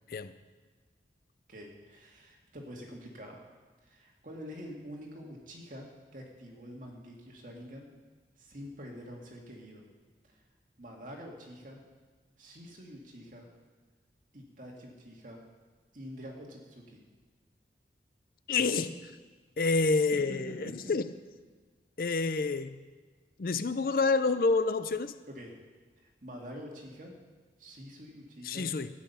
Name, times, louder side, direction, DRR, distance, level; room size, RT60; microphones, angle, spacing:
voice 1, 1.5-3.4 3.8-7.9 8.4-9.8 10.3-10.4 10.8-11.8 12.4-13.5 14.3-15.4 15.9-17.0 19.9-20.1 20.6-20.7 25.3-25.5 26.0-27.1 27.6-28.7, equal, 45° right, 0 dB, 2.0 m, -46 dB
voice 2, 18.5-19.1 19.6-21.1 22.0-22.8 23.4-25.2 28.4-28.9, left 3 dB, 55° left, 13 dB, 0.4 m, -28 dB
12.5 x 8.8 x 5.6 m, 1.4 s
head